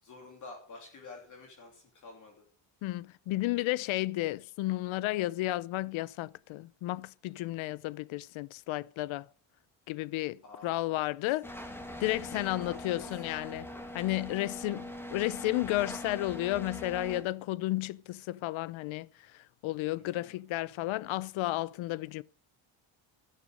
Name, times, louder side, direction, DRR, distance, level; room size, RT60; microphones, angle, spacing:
voice 1, 0.0-2.4 2.8-2.9 10.4-10.9 11.2-11.3 12.2-13.1 13.6-13.8 19.9-20.4, left 3 dB, 40° left, 3.2 m, -50 dB
voice 2, 2.8-9.3 9.9-11.6 12.0-13.7 13.9-19.1 19.6-22.2, left 17 dB, 80° left, 0.7 m, -32 dB
sound 1, 11.4-17.2, left 1 dB, 5° left, 2.0 m, -42 dB
13.0 x 11.5 x 6.4 m
cardioid pair, 175°, 47 cm